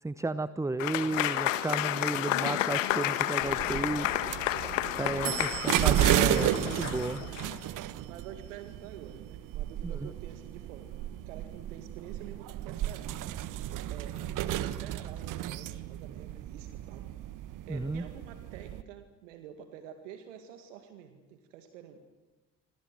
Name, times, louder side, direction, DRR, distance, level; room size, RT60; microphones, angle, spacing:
voice 1, 0.0-4.1 5.0-7.2 9.8-10.1 17.7-18.1, right 2 dB, 10° right, 15 dB, 0.9 m, -33 dB
Applause / Crowd, 0.8-7.6, left 13 dB, 75° left, 1.5 m, -31 dB
sound 1, 3.4-18.8, right 12 dB, 55° right, 1.4 m, -33 dB
voice 2, 5.1-5.6 8.1-13.2 13.9-17.1 17.7-22.0, right 9 dB, 70° right, 7 dB, 2.1 m, -48 dB
28.0 x 26.5 x 7.7 m, 1.2 s
figure-of-eight pair, 50°, 39 cm